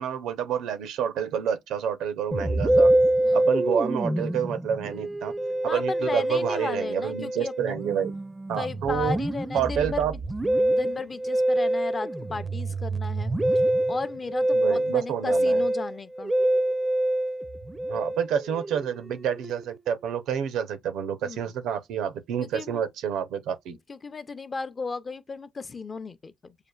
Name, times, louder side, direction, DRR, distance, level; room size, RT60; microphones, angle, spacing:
voice 1, 0.0-2.9 3.3-5.3 5.6-8.1 8.5-9.2 9.5-10.1 14.5-15.6 17.9-23.8, right 8 dB, 85° right, 0.5 m, -28 dB
Musical instrument, 2.3-19.9, right 1 dB, 20° right, 0.4 m, -26 dB
voice 2, 5.7-7.7 8.5-10.1 10.7-13.3 13.9-16.3 21.2-21.5 22.4-22.8 23.9-26.6, left 4 dB, 35° left, 0.5 m, -35 dB
6.5 x 2.4 x 2.2 m
cardioid pair, 90°, 0 cm